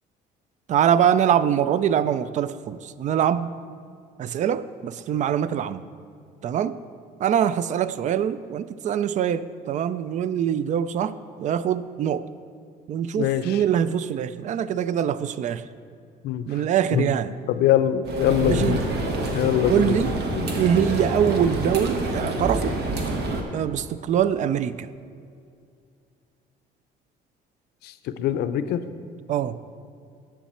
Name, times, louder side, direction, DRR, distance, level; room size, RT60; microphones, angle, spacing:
voice 1, 0.7-3.5 4.2-5.8 6.4-6.8 7.2-12.3 12.9-15.6 16.5-17.3 18.4-18.8 19.7-20.1 20.6-22.7 23.5-24.9 29.3-29.6, right 9 dB, 45° right, 15 dB, 0.4 m, -23 dB
voice 2, 13.2-13.6 16.2-16.6 16.9-17.1 17.5-18.9 19.3-20.0 20.4-20.5 27.8-28.8, left 10 dB, 75° left, 11 dB, 0.5 m, -23 dB
sound 1, 18.1-23.4, right 1 dB, 75° right, 1.2 m, -27 dB
10.0 x 7.3 x 4.3 m, 2.4 s
cardioid pair, 110°, 17 cm